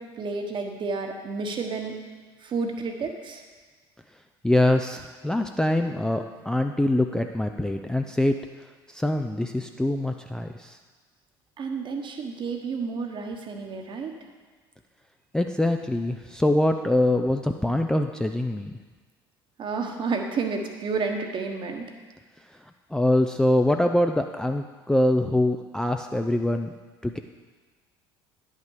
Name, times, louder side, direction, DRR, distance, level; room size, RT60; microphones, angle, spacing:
voice 1, 0.0-1.9 2.4-3.4 11.6-14.1 19.6-21.8, right 4 dB, 40° right, 4 dB, 1.3 m, -30 dB
voice 2, 4.4-8.4 8.9-10.8 15.3-18.7 22.9-26.7 27.0-27.2, left 1 dB, 5° left, 5 dB, 0.4 m, -24 dB
10.0 x 5.8 x 4.8 m, 1.4 s
figure-of-eight pair, 60°, 13 cm